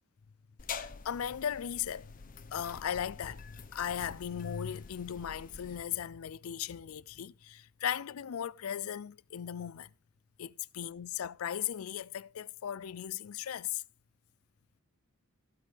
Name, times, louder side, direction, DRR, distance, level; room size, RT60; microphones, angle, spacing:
sound 1, 0.6-5.8, left 5 dB, 40° left, 0.8 m, -46 dB
voice 1, 0.7-2.1 2.5-9.9 10.4-13.8, left 9 dB, 85° left, 0.4 m, -37 dB
15.0 x 8.8 x 3.5 m
head